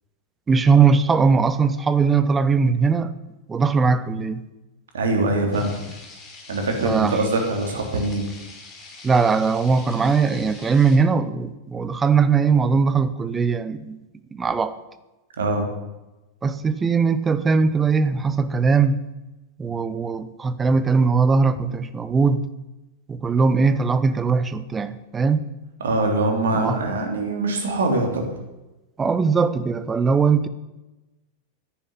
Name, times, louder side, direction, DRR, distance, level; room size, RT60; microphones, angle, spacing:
voice 1, 0.5-3.1 3.5-4.4 6.8-7.2 9.0-14.0 14.3-14.7 16.4-19.0 19.6-22.5 23.1-25.4 26.5-26.8 29.0-30.5, right 5 dB, 15° right, 13 dB, 1.0 m, -20 dB
voice 2, 4.9-5.7 6.5-8.3 15.4-15.7 25.8-28.3, right 2 dB, 65° right, 3 dB, 3.2 m, -23 dB
sound 1, 5.5-11.0, left 3 dB, 25° left, 4.5 m, -44 dB
10.5 x 10.0 x 9.9 m, 1.0 s
figure-of-eight pair, 90°, 0 cm